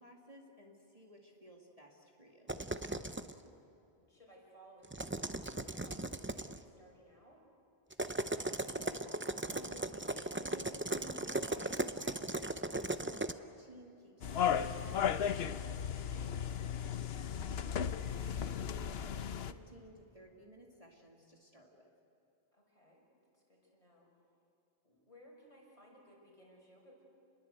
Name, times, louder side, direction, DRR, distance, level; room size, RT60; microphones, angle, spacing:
voice 1, 0.0-2.5 3.4-3.7 8.4-21.9, equal, 35° right, 0 dB, 2.2 m, -57 dB
sound 1, 2.5-3.3 4.8-6.6 7.9-13.3, right 2 dB, 15° right, 0.6 m, -37 dB
voice 2, 4.0-7.4 22.5-23.0 23.3-24.1 24.8-27.0, equal, 35° left, -2 dB, 6.4 m, -60 dB
sound 2, 14.2-19.5, left 8 dB, 75° left, 1.0 m, -35 dB
29.0 x 21.5 x 8.1 m, 2.7 s
omnidirectional pair, 1.1 m